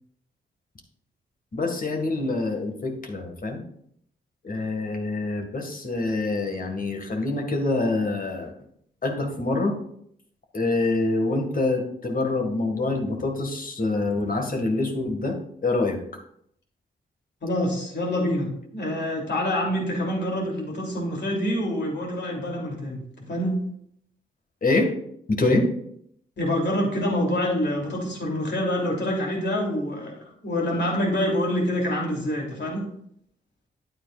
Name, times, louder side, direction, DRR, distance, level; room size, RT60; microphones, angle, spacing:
voice 1, 1.5-3.6 4.4-8.5 9.0-9.8 10.5-15.4 15.6-16.0 24.6-24.9 25.3-25.7, left 2 dB, 45° left, 3 dB, 2.0 m, -25 dB
voice 2, 17.4-23.0 23.3-23.6 26.4-32.8, left 1 dB, 60° left, -1 dB, 3.2 m, -26 dB
9.5 x 8.9 x 2.5 m, 0.69 s
supercardioid pair, 45°, 21 cm